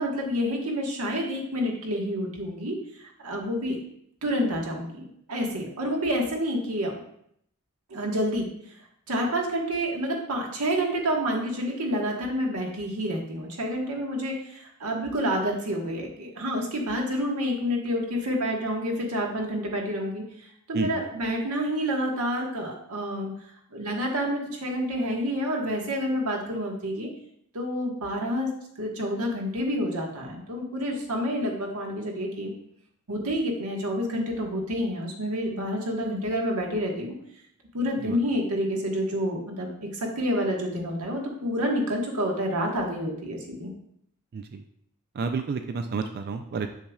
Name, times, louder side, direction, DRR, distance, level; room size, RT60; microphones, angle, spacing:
voice 1, 0.0-3.8 4.2-7.0 7.9-23.3 23.7-27.1 27.5-28.5 28.8-32.5 33.1-37.1 37.7-43.7, equal, 90° right, 0 dB, 1.4 m, -28 dB
voice 2, 44.3-44.6 45.1-46.7, right 4 dB, 45° right, 7 dB, 0.4 m, -30 dB
7.1 x 6.7 x 2.3 m, 0.70 s
head